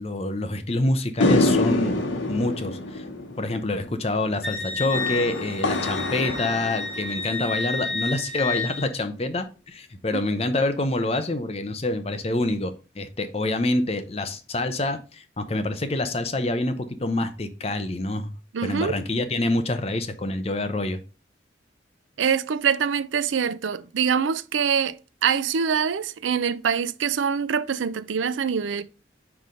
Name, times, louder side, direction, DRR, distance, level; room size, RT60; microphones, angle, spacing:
voice 1, 0.0-2.0 2.3-3.0 3.4-18.3 18.6-21.0, left 2 dB, 30° left, 0.7 m, -26 dB
sound 1, 1.2-7.7, left 2 dB, 85° left, 1.0 m, -26 dB
Wind instrument woodwind instrument, 4.4-8.9, left 3 dB, ahead, 3.2 m, -31 dB
voice 2, 18.5-19.0 22.2-25.0 25.2-28.8, right 7 dB, 90° right, 0.5 m, -24 dB
5.3 x 4.8 x 3.7 m
head